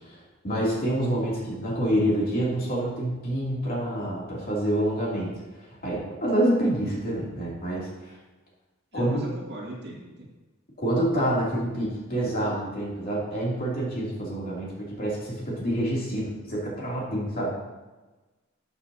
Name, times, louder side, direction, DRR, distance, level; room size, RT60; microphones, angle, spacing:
voice 1, 0.4-5.4 5.8-8.1 8.9-9.2 10.8-17.5, right 1 dB, 45° left, -5 dB, 2.8 m, -27 dB
voice 2, 8.9-10.3, right 1 dB, 55° right, -2 dB, 2.1 m, -38 dB
12.5 x 6.9 x 2.8 m, 1.2 s
head